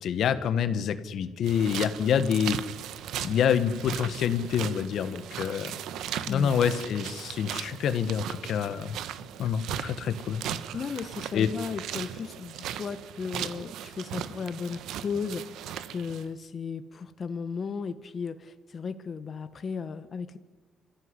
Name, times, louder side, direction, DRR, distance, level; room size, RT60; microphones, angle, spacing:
voice 1, 0.0-2.6 3.2-5.7 6.3-9.0 9.4-10.4 11.3-11.5, left 8 dB, 70° left, 11 dB, 1.5 m, -27 dB
sound 1, 1.4-16.3, right 10 dB, 80° right, 1.3 m, -38 dB
voice 2, 6.3-6.6 10.7-15.4 15.9-20.4, left 5 dB, 45° left, 10 dB, 1.3 m, -35 dB
26.5 x 15.0 x 9.9 m, 1.3 s
cardioid pair, 85°, 0 cm